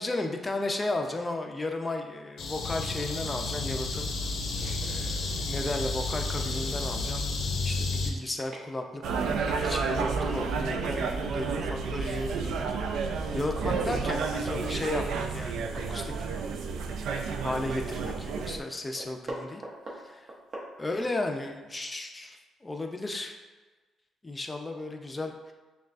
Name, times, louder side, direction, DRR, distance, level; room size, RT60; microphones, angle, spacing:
voice 1, 0.0-4.1 4.8-7.3 7.6-9.2 9.6-16.1 17.4-19.6 20.0-20.3 20.8-23.4 24.2-25.5, left 2 dB, 20° left, 3 dB, 0.5 m, -34 dB
sound 1, 2.4-8.1, left 3 dB, 70° left, 0.6 m, -31 dB
sound 2, 4.6-4.8 6.2-6.3 6.8-6.9 7.1-7.5 8.0-8.1 8.5-8.6 9.0-9.6 10.9-11.1 11.9-12.6 13.1-13.2 13.5-14.7 15.6-15.9 16.3-16.4 16.8-17.9 18.2-18.3 18.7-21.2, right 1 dB, 45° right, 1.0 m, -42 dB
sound 3, 9.0-18.6, right 5 dB, 75° right, 0.3 m, -31 dB
6.2 x 2.3 x 2.4 m, 1.3 s
cardioid pair, 90°, 0 cm